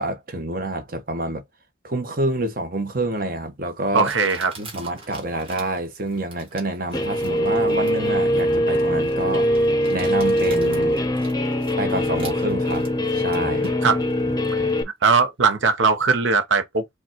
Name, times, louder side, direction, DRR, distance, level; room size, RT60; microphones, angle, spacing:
voice 1, 0.0-1.4 1.8-4.1 4.6-11.0 11.8-12.9 13.1-13.8, right 2 dB, 45° right, 1.0 m, -27 dB
Crumpling crinkling, 3.1-3.2 4.0-14.1, right 2 dB, 30° right, 1.6 m, -44 dB
voice 2, 3.9-4.5 13.8-14.0 15.0-17.0, right 4 dB, 80° right, 0.8 m, -19 dB
Guitar, 6.9-14.8, equal, 20° left, 0.7 m, -22 dB
5.0 x 2.4 x 4.4 m
head